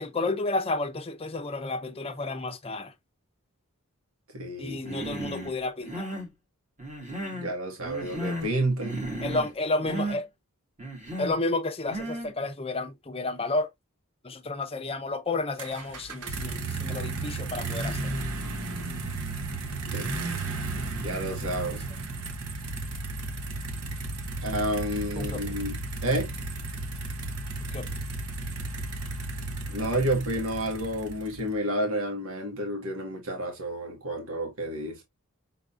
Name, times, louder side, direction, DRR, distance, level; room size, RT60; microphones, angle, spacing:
voice 1, 0.0-2.9 4.6-6.1 9.2-10.3 11.2-13.7 14.2-18.1 25.2-25.5 27.7-28.0, left 2 dB, 25° left, 0.7 m, -31 dB
voice 2, 4.3-4.8 7.3-9.1 19.9-20.1 21.0-21.8 24.4-25.8 26.0-26.3 29.7-35.0, right 1 dB, 65° right, 1.6 m, -30 dB
Human voice, 4.8-5.5 5.8-6.3 6.8-7.5 7.8-8.6 8.8-9.5 9.8-10.2 10.8-11.4 11.9-12.3, right 1 dB, 35° right, 1.8 m, -34 dB
sound 1, 15.6-31.6, right 2 dB, 80° right, 1.2 m, -34 dB
5.7 x 3.8 x 2.4 m
head